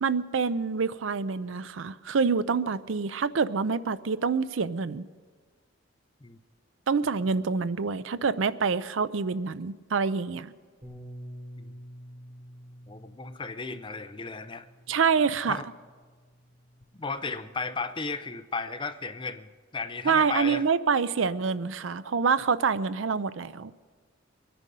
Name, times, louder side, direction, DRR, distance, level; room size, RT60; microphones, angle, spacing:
voice 1, 0.0-5.0 6.9-10.5 14.9-15.6 20.0-23.7, right 5 dB, 85° right, 16 dB, 0.5 m, -26 dB
Bass guitar, 10.8-17.1, equal, 35° right, 3.9 m, -48 dB
voice 2, 12.9-14.6 15.5-15.6 16.9-20.6, left 4 dB, 25° left, 10 dB, 0.6 m, -35 dB
23.0 x 10.5 x 5.4 m, 1.5 s
head